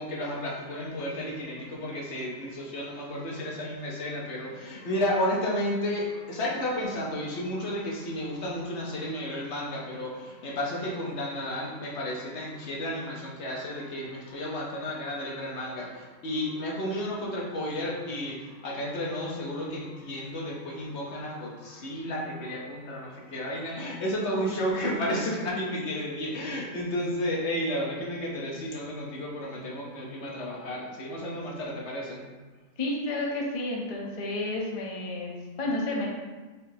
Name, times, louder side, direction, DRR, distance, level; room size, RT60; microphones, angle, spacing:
voice 1, 0.0-32.2, left 1 dB, 60° left, -2 dB, 0.9 m, -32 dB
voice 2, 32.8-36.1, left 2 dB, 40° left, -2 dB, 0.5 m, -31 dB
4.1 x 3.9 x 2.7 m, 1.3 s
omnidirectional pair, 1.4 m